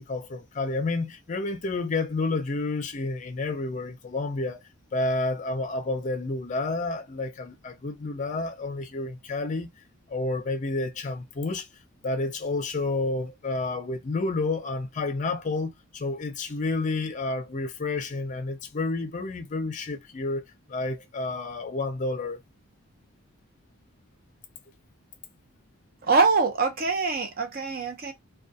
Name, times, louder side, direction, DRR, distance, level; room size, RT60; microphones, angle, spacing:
voice 1, 0.0-4.6 4.9-9.7 10.1-11.7 12.0-20.4 20.7-22.4, left 3 dB, 35° left, 0.4 m, -30 dB
voice 2, 26.0-28.1, right 4 dB, 45° right, 0.6 m, -24 dB
2.3 x 2.2 x 2.6 m
head